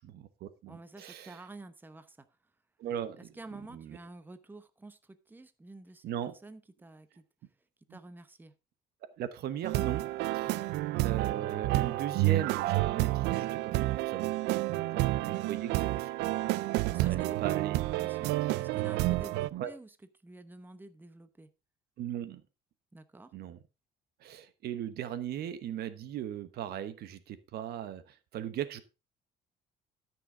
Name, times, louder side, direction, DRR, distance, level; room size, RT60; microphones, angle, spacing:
voice 1, 0.0-1.3 2.8-3.2 3.7-4.0 6.0-6.3 7.9-8.0 9.0-10.0 10.3-10.6 11.0-14.3 14.9-16.1 17.0-17.8 19.5-19.7 22.0-22.4 23.3-23.6 24.2-28.8, right 10 dB, 70° right, 13 dB, 1.1 m, -38 dB
voice 2, 0.7-2.5 3.2-7.2 7.9-8.5 14.5-15.0 16.8-17.3 17.8-20.0 20.2-21.5 22.9-23.3, right 2 dB, 10° right, 11 dB, 1.0 m, -50 dB
sound 1, 9.6-19.5, right 18 dB, 90° right, 0.5 m, -30 dB
13.5 x 6.1 x 3.7 m, 0.29 s
cardioid pair, 110°, 17 cm